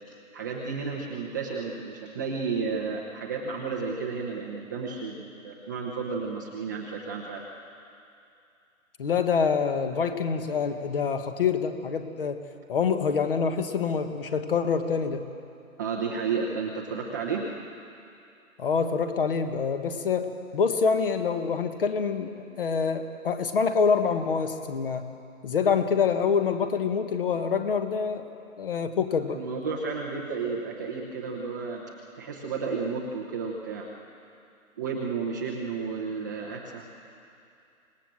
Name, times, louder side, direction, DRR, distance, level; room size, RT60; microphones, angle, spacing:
voice 1, 0.3-7.4 15.8-17.5 29.3-33.9 34.8-36.9, right 5 dB, 15° right, -3 dB, 0.8 m, -32 dB
voice 2, 9.0-15.3 18.6-22.3 22.6-25.0 25.4-29.4, left 6 dB, 40° left, 8 dB, 1.6 m, -26 dB
26.5 x 19.0 x 7.6 m, 2.6 s
hypercardioid pair, 160°, 43 cm